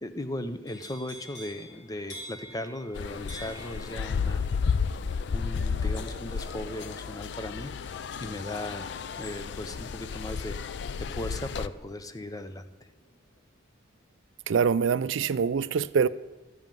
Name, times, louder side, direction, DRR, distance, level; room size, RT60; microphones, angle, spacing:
voice 1, 0.0-4.4 5.3-10.8 11.1-12.7, left 1 dB, 20° left, 10 dB, 0.6 m, -37 dB
sound 1, 0.7-12.6 13.0-13.4, equal, 85° left, 2.8 m, -49 dB
sound 2, 2.9-11.7, left 5 dB, 60° left, 0.4 m, -32 dB
voice 2, 14.5-16.1, right 6 dB, 70° right, 17 dB, 0.4 m, -24 dB
13.0 x 5.7 x 9.0 m, 1.1 s
head